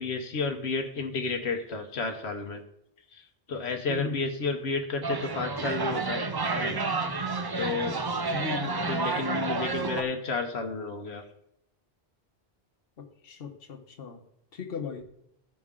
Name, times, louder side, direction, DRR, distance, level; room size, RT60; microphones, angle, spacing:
voice 1, 0.0-2.6 3.1-3.2 3.5-6.2 6.5-6.8 7.5-8.0 8.6-11.2, left 4 dB, 85° left, 3 dB, 1.2 m, -31 dB
voice 2, 3.9-4.3 8.3-8.9 13.0-14.2 14.5-15.0, left 6 dB, 65° left, 3 dB, 1.2 m, -37 dB
sound 1, 5.0-10.0, right 3 dB, 30° right, 0.4 m, -30 dB
14.5 x 5.3 x 3.7 m, 0.76 s
omnidirectional pair, 1.1 m